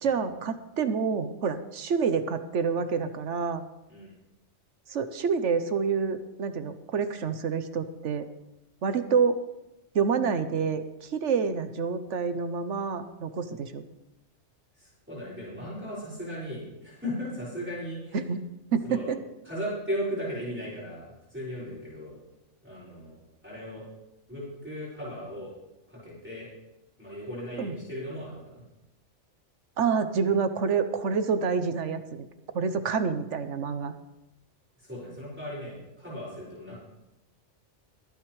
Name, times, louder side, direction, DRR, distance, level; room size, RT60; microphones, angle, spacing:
voice 1, 0.0-3.6 4.9-8.3 8.8-9.4 9.9-13.8 18.1-18.4 18.7-19.2 27.6-27.7 29.8-32.3 32.5-33.9, right 5 dB, 75° right, 10 dB, 1.2 m, -27 dB
voice 2, 14.7-18.2 18.9-19.1 19.4-22.2 22.6-23.2 23.4-23.9 24.3-25.5 25.9-26.5 27.0-28.6 34.8-36.8, equal, 10° right, -9 dB, 5.8 m, -37 dB
24.0 x 9.3 x 3.2 m, 0.95 s
omnidirectional pair, 1.3 m